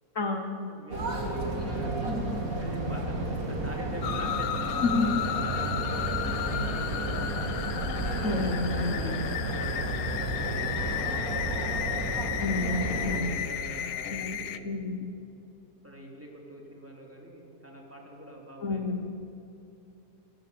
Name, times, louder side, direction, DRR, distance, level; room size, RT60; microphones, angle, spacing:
voice 1, 0.1-0.7 2.1-2.4 4.8-5.3 8.2-9.2 12.4-13.4 14.0-15.1 18.6-19.3, left 3 dB, 55° left, 5 dB, 1.4 m, -30 dB
voice 2, 0.7-2.0 2.6-7.4 8.1-11.8 12.7-14.9 15.8-19.0, right 1 dB, 10° right, -1 dB, 3.6 m, -44 dB
sound 1, 0.9-13.2, right 2 dB, 55° right, 3.2 m, -32 dB
sound 2, 4.0-14.6, left 10 dB, 80° left, 1.4 m, -34 dB
29.0 x 16.5 x 6.8 m, 2.8 s
omnidirectional pair, 1.8 m